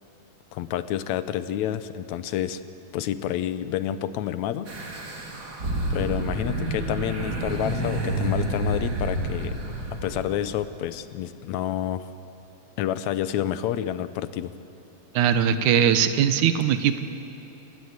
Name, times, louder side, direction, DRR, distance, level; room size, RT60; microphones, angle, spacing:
voice 1, 0.5-2.6 2.9-4.7 5.9-9.5 10.0-12.1 12.8-14.5, left 11 dB, 75° left, 12 dB, 2.1 m, -29 dB
sound 1, 4.7-10.6, right 1 dB, 35° right, 2.9 m, -29 dB
voice 2, 15.1-17.0, right 8 dB, 80° right, 10 dB, 2.5 m, -20 dB
29.5 x 18.0 x 8.1 m, 2.9 s
omnidirectional pair, 3.4 m